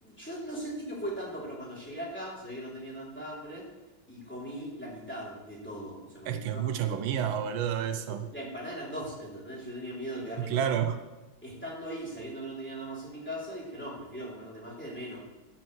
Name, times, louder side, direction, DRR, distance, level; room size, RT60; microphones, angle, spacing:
voice 1, 0.0-3.6 4.1-6.7 8.1-10.8 11.4-15.2, right 1 dB, 5° left, -6 dB, 2.8 m, -39 dB
voice 2, 6.3-8.3 10.5-11.0, right 9 dB, 90° right, 9 dB, 1.5 m, -29 dB
13.0 x 7.9 x 3.1 m, 1.1 s
omnidirectional pair, 2.2 m